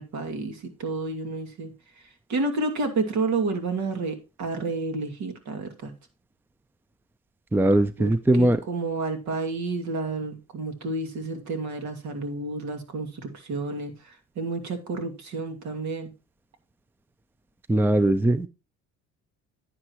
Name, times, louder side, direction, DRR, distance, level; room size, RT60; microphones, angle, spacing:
voice 1, 0.0-1.7 2.3-5.9 8.0-8.1 8.4-16.1, right 3 dB, 60° right, 5 dB, 2.5 m, -30 dB
voice 2, 7.5-8.6 17.7-18.5, right 1 dB, 5° right, 14 dB, 0.5 m, -20 dB
10.0 x 9.7 x 3.0 m, 0.28 s
cardioid pair, 95°, 32 cm